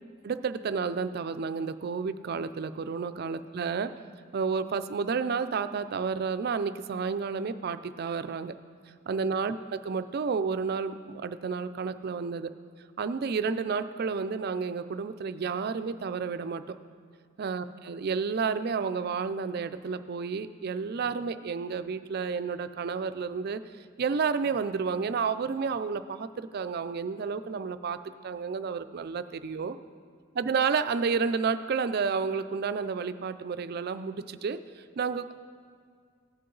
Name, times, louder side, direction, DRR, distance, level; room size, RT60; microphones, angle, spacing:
voice 1, 0.2-3.9 4.3-8.6 9.1-12.5 13.0-16.8 17.4-23.6 24.0-29.8 30.3-35.3, right 5 dB, 50° right, 12 dB, 0.4 m, -31 dB
17.0 x 6.7 x 3.9 m, 2.1 s
head